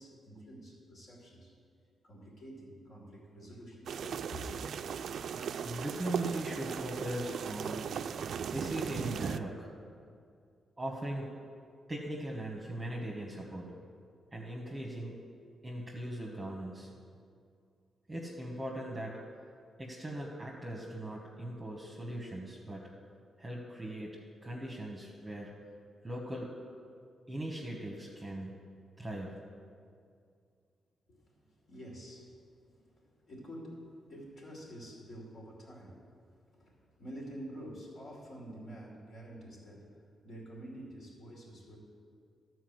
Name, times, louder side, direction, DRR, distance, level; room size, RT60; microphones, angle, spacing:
voice 1, 0.0-1.5 2.0-4.6 31.1-36.1 36.5-41.8, right 1 dB, 60° left, -3 dB, 2.8 m, -48 dB
sound 1, 3.9-9.4, right 7 dB, 65° right, 0.3 m, -37 dB
voice 2, 5.6-7.9 8.5-9.7 10.8-11.3 11.9-13.7 14.3-15.2 15.6-16.9 18.1-19.2 19.8-22.8 23.4-25.5 26.0-26.5 27.3-28.5 29.0-29.3, right 1 dB, 15° right, -2 dB, 1.1 m, -39 dB
12.5 x 4.6 x 7.8 m, 2.3 s
cardioid pair, 110°, 0 cm